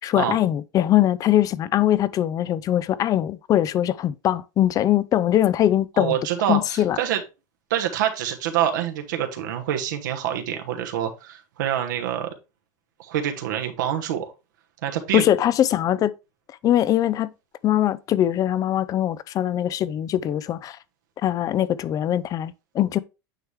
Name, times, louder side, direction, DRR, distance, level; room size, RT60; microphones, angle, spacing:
voice 1, 0.0-6.2 6.5-7.0 15.1-16.1 16.6-17.3 17.6-20.8 21.2-23.0, left 12 dB, 35° left, 0.5 m, -21 dB
voice 2, 6.0-7.2 7.7-12.3 13.0-14.3 14.8-15.3, right 10 dB, 85° right, 1.2 m, -26 dB
9.0 x 3.2 x 3.5 m
supercardioid pair, 115°, 10 cm